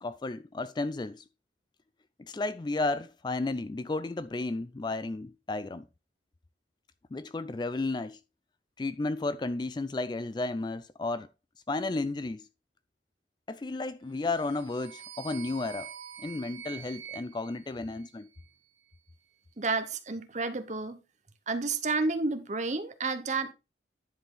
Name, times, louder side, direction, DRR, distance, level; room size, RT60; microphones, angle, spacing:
voice 1, 0.0-1.2 2.2-5.8 7.1-8.2 8.8-11.3 11.7-12.4 13.5-15.9 16.2-18.3, left 2 dB, 25° left, 0.3 m, -33 dB
sound 1, 14.2-18.5, right 10 dB, 75° right, 0.9 m, -46 dB
voice 2, 19.6-21.0 21.5-23.5, right 3 dB, 40° right, 0.9 m, -30 dB
10.0 x 5.0 x 3.8 m
head